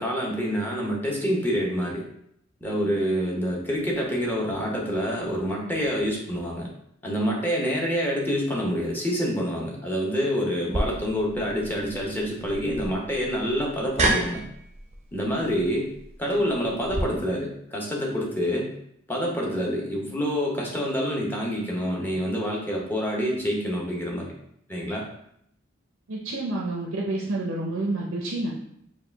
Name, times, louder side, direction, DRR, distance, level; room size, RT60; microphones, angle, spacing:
voice 1, 0.0-2.0 2.6-6.7 7.0-14.5 15.1-15.9 16.2-18.7 19.1-24.3 24.7-25.1, equal, 10° left, -2 dB, 0.7 m, -27 dB
sound 1, 10.7-17.0, right 2 dB, 30° right, 0.5 m, -31 dB
voice 2, 26.1-28.5, right 2 dB, 85° right, -3 dB, 0.6 m, -29 dB
4.6 x 2.3 x 3.4 m, 0.72 s
head